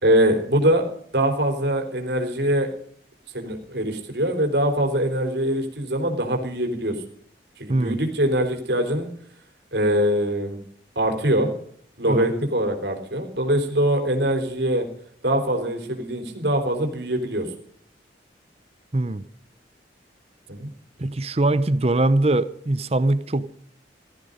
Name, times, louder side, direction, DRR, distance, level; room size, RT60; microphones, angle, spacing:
voice 1, 0.0-0.9 1.1-2.7 3.3-6.9 7.6-9.1 9.7-10.6 11.0-11.5 12.0-14.9 15.2-17.5 20.5-20.7, right 1 dB, 65° right, 4 dB, 3.7 m, -23 dB
voice 2, 18.9-19.2 21.0-23.5, right 2 dB, 35° right, 15 dB, 0.7 m, -22 dB
16.5 x 14.0 x 5.2 m, 0.62 s
head